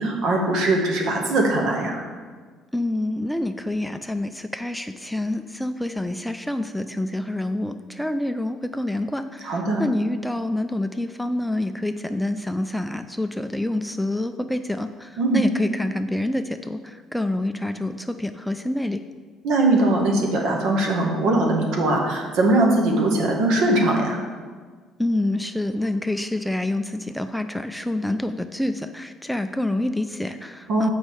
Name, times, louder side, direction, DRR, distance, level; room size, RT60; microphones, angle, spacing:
voice 1, 0.0-2.0 9.4-9.8 15.2-15.4 19.4-24.2 30.7-30.9, right 2 dB, 70° right, 0 dB, 1.5 m, -21 dB
voice 2, 2.7-19.0 25.0-30.9, left 1 dB, 5° left, 8 dB, 0.3 m, -27 dB
7.4 x 5.3 x 4.7 m, 1.5 s
cardioid pair, 110°, 0 cm